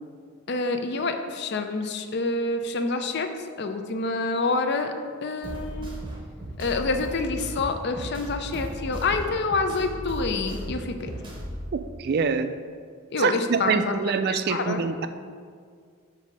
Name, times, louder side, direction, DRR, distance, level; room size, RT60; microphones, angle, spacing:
voice 1, 0.5-3.3 3.6-4.9 5.2-5.9 6.6-11.1 13.1-14.8, left 3 dB, 50° left, 6 dB, 0.5 m, -27 dB
sound 1, 5.4-11.7, equal, 20° right, 0.7 m, -36 dB
voice 2, 11.7-12.5 13.2-15.1, right 5 dB, 45° right, 10 dB, 0.3 m, -25 dB
8.1 x 2.7 x 5.3 m, 2.1 s
head